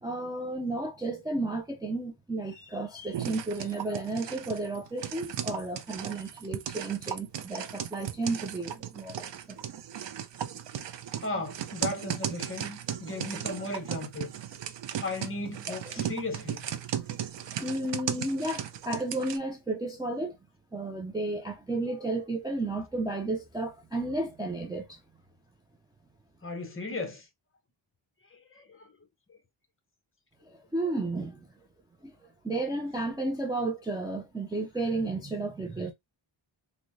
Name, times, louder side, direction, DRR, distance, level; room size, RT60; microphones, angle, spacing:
voice 1, 0.0-9.6 15.7-16.0 17.6-20.4 20.7-25.0 30.5-31.5 32.0-35.9, right 2 dB, 10° right, 0.4 m, -33 dB
sound 1, 3.1-19.4, right 10 dB, 65° right, 0.5 m, -36 dB
voice 2, 11.2-14.3 15.0-16.7 26.4-27.3 28.3-28.9 29.3-29.4, left 2 dB, 30° left, 0.8 m, -36 dB
3.8 x 2.1 x 3.0 m
wide cardioid pair, 180°, 47 cm